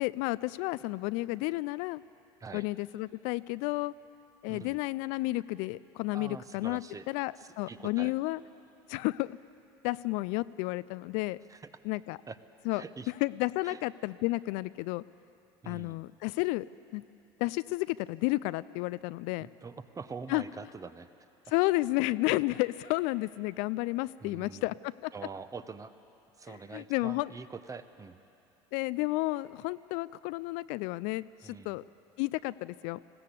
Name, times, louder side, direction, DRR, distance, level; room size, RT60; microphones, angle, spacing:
voice 1, 0.0-2.0 2.5-3.9 4.4-8.4 8.9-9.4 9.8-11.4 11.8-12.2 12.7-12.8 13.2-15.0 15.7-16.7 16.9-17.0 17.4-19.5 20.3-20.4 21.5-25.1 26.5-27.3 28.7-31.8 32.2-33.0, left 20 dB, 65° left, 17 dB, 0.4 m, -31 dB
voice 2, 4.5-4.8 6.1-7.1 7.4-8.1 11.5-11.7 12.3-12.4 12.7-13.1 13.6-13.8 15.6-16.0 19.4-21.1 24.2-24.7 25.1-25.9 26.4-28.2 31.4-31.8, right 5 dB, 25° right, 11 dB, 1.0 m, -44 dB
20.5 x 15.5 x 8.3 m, 2.8 s
hypercardioid pair, 75°, 14 cm